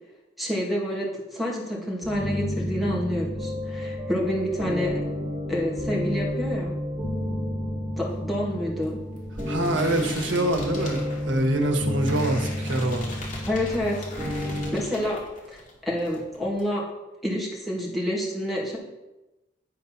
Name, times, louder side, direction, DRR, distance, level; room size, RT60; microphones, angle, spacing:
voice 1, 0.4-4.9 5.5-6.7 8.0-9.0 13.5-14.0 14.7-15.2 15.5-16.8 17.2-18.8, equal, ahead, -4 dB, 2.1 m, -28 dB
sound 1, 2.0-14.7, left 1 dB, 35° right, 2.5 m, -31 dB
sound 2, 8.0-15.7 16.0-16.7, left 2 dB, 40° left, 2.5 m, -40 dB
voice 2, 9.5-13.1, right 1 dB, 80° right, 4 dB, 1.3 m, -25 dB
10.5 x 4.2 x 5.8 m, 1.0 s
head